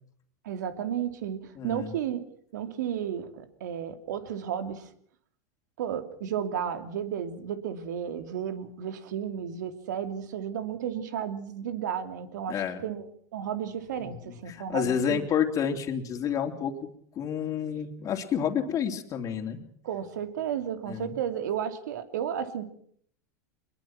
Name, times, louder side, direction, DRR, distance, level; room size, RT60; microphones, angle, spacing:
voice 1, 0.4-2.2 2.5-4.9 5.8-15.2 19.8-22.6, right 9 dB, 75° right, 9 dB, 2.8 m, -33 dB
voice 2, 1.6-1.9 12.5-12.8 14.0-14.2 14.5-16.7 17.1-19.6 20.9-21.1, left 8 dB, 35° left, 4 dB, 3.2 m, -29 dB
24.0 x 21.5 x 6.1 m, 0.62 s
hypercardioid pair, 105°, 10 cm